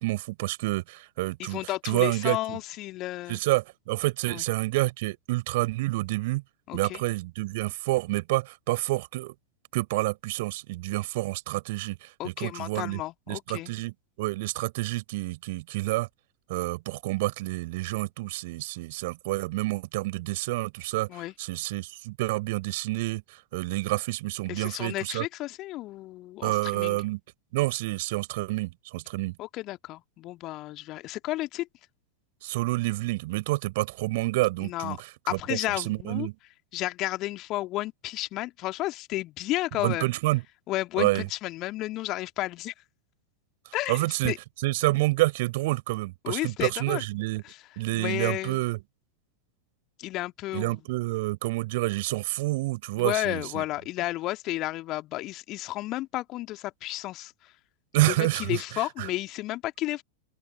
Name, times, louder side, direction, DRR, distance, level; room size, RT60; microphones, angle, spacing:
voice 1, 0.0-1.6 1.8-2.6 3.3-6.4 6.7-9.3 9.7-13.0 13.3-16.1 16.5-25.2 26.4-27.2 27.5-29.3 32.4-35.0 35.3-35.6 35.8-36.3 39.8-40.4 41.0-41.3 43.9-44.3 44.6-47.4 47.8-48.8 50.5-53.6 57.9-59.1, right 20 dB, 50° right, 5.1 m, -28 dB
voice 2, 1.4-3.4 4.3-4.4 6.7-7.0 12.2-13.7 21.1-21.3 24.5-27.0 29.4-31.7 34.6-35.0 35.3-36.3 36.7-40.1 40.7-42.7 43.7-44.4 46.2-47.0 47.4-47.6 47.9-48.6 50.0-50.8 53.0-57.5 58.0-60.0, left 17 dB, 35° left, 1.9 m, -32 dB
open air
figure-of-eight pair, 90°, 0 cm